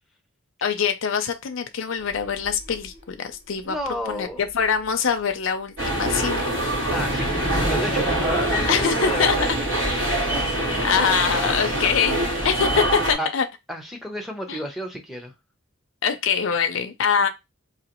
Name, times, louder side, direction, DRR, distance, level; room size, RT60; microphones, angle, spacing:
voice 1, 0.6-3.8 4.1-6.4 8.7-9.3 10.8-12.2 12.4-13.5 14.5-14.6 16.0-17.3, left 6 dB, 60° left, 0.5 m, -23 dB
sound 1, 1.9-4.9 5.3-5.4 6.8-11.9, equal, 25° right, 1.8 m, -35 dB
voice 2, 3.6-4.5 6.9-9.9 10.3-11.6 12.7-12.8 13.2-13.3 13.7-15.3, equal, ahead, 0.6 m, -33 dB
sound 2, 5.8-13.1, right 1 dB, 65° right, 2.6 m, -24 dB
3.9 x 2.9 x 2.9 m
head